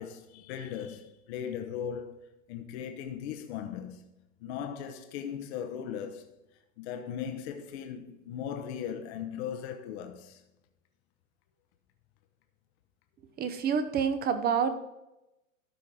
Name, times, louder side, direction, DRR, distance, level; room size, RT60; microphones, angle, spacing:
voice 1, 0.0-4.0 4.4-6.4 6.8-10.4, left 8 dB, 50° left, 1.0 m, -38 dB
voice 2, 13.4-14.7, right 7 dB, 25° right, 0.8 m, -27 dB
13.0 x 4.5 x 5.3 m
hypercardioid pair, 120°, 41 cm